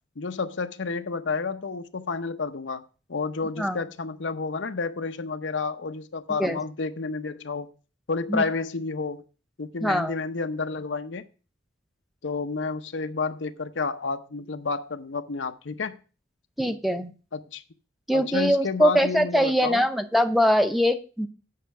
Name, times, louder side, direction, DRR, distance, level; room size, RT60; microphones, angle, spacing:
voice 1, 0.2-2.8 3.1-7.7 8.1-9.2 9.6-11.2 12.2-16.0 17.3-17.6 18.1-19.9, left 4 dB, 80° left, 0.7 m, -30 dB
voice 2, 9.8-10.1 16.6-17.1 18.1-21.3, equal, ahead, 0.6 m, -22 dB
8.5 x 5.7 x 5.5 m
head